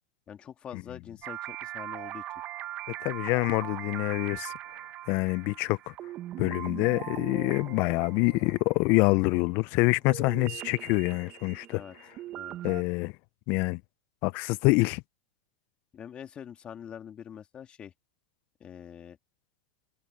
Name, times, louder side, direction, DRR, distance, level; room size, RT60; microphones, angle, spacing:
voice 1, 0.3-2.2 11.7-12.0 12.3-12.6 15.9-17.9 18.6-19.2, left 8 dB, 30° left, 2.5 m, -44 dB
sound 1, 1.2-9.8 10.1-12.8, right 14 dB, 40° right, 1.0 m, -40 dB
voice 2, 3.0-4.5 5.1-5.8 6.4-11.8 12.6-13.1 13.5-13.8 14.2-15.0, left 26 dB, 50° left, 0.4 m, -26 dB
hypercardioid pair, 120°, 4 cm